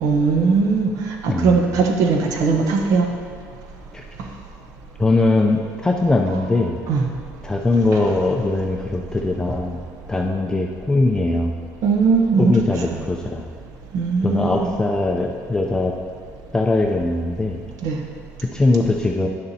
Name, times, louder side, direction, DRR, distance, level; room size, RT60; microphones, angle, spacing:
voice 1, 0.0-0.9 1.2-3.1 6.9-7.1 7.9-8.0 11.8-12.6 12.9-13.0 13.9-14.7 17.8-18.0, right 4 dB, 70° right, 3 dB, 0.9 m, -19 dB
voice 2, 1.3-1.7 3.9-4.0 5.0-6.8 7.4-9.8 10.1-11.6 12.4-13.4 14.2-15.9 16.5-17.6 18.5-19.3, left 2 dB, 10° left, 0 dB, 0.4 m, -20 dB
10.5 x 6.8 x 2.8 m, 2.2 s
cardioid pair, 125°, 6 cm